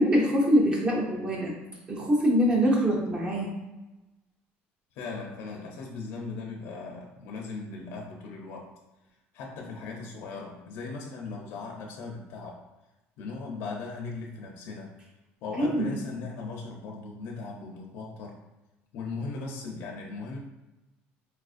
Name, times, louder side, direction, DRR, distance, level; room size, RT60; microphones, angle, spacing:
voice 1, 0.0-1.5 1.9-3.5 15.5-15.9, equal, 20° right, -1 dB, 0.6 m, -24 dB
voice 2, 4.9-8.7 9.3-12.6 13.2-14.9 15.4-18.4 18.9-20.4, left 3 dB, 60° left, -1 dB, 0.5 m, -38 dB
4.2 x 2.4 x 2.4 m, 1.0 s
cardioid pair, 175°, 5 cm